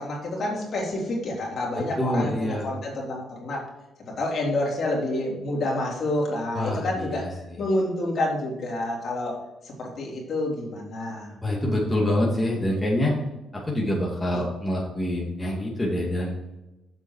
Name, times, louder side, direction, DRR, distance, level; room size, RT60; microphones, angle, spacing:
voice 1, 0.0-3.6 4.1-7.3 7.6-9.4 9.6-11.4 14.3-14.4, left 1 dB, 55° left, -3 dB, 3.6 m, -28 dB
voice 2, 2.0-2.7 6.5-7.6 11.4-13.1 13.5-16.3, left 1 dB, 15° left, -4 dB, 2.4 m, -26 dB
7.7 x 6.8 x 4.8 m, 1.0 s
cardioid pair, 90°, 0 cm